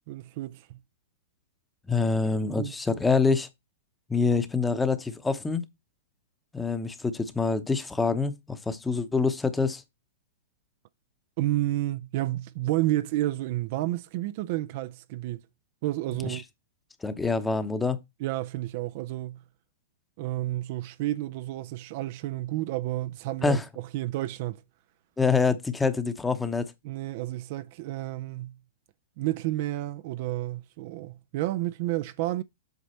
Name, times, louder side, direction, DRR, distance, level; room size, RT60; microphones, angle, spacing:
voice 1, 0.1-0.8 2.6-2.7 11.4-15.4 15.8-16.4 18.2-19.4 20.2-24.6 26.8-28.6 29.2-32.4, right 16 dB, 45° right, 0.4 m, -30 dB
voice 2, 1.9-3.5 4.1-5.6 6.5-9.8 16.2-16.4 17.0-18.0 23.4-23.6 25.2-26.6, left 4 dB, 10° left, 0.9 m, -26 dB
8.2 x 5.1 x 4.3 m
hypercardioid pair, 145°, 0 cm